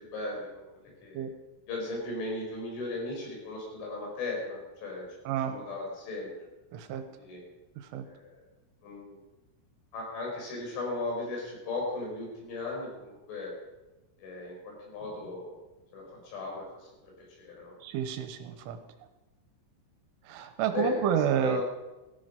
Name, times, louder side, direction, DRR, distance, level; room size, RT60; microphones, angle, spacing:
voice 1, 0.0-1.3 1.7-6.3 7.0-7.4 8.0-8.5 8.8-9.2 9.9-13.5 14.2-15.5 15.9-17.8 20.7-21.1 21.4-21.6, left 3 dB, 70° left, -1 dB, 7.2 m, -37 dB
voice 2, 6.7-7.1 7.8-8.1 17.8-18.8 20.3-21.6, right 9 dB, 80° right, 8 dB, 3.5 m, -30 dB
18.0 x 14.5 x 5.3 m, 1.1 s
omnidirectional pair, 5.8 m